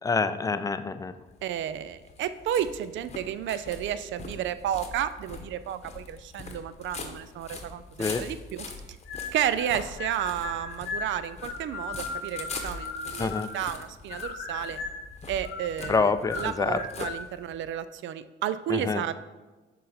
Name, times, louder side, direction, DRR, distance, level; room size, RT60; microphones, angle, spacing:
voice 1, 0.0-1.1 8.0-8.2 13.2-13.5 15.9-16.8 18.7-19.0, left 4 dB, 15° left, 11 dB, 0.4 m, -26 dB
sound 1, 1.2-17.7, left 3 dB, 35° left, 0.9 m, -43 dB
voice 2, 1.4-8.6 9.3-14.8 15.3-19.1, right 10 dB, 70° right, 14 dB, 0.4 m, -32 dB
sound 2, 9.1-9.7 10.0-13.8 14.1-15.1 15.4-17.2, left 3 dB, 85° left, 0.9 m, -37 dB
6.4 x 4.0 x 4.2 m, 1.2 s
cardioid pair, 90°, 20 cm